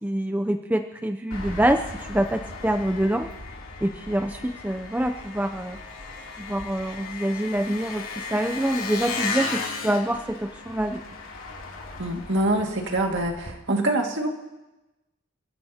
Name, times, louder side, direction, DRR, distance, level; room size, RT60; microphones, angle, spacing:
voice 1, 0.0-3.3 3.8-5.8 6.4-11.0, right 1 dB, 10° right, 5 dB, 0.5 m, -26 dB
Engine, 1.3-13.5, left 3 dB, 80° left, 3.0 m, -36 dB
voice 2, 12.0-14.3, right 1 dB, 60° right, 2 dB, 2.0 m, -25 dB
30.0 x 14.5 x 2.9 m, 1.0 s
head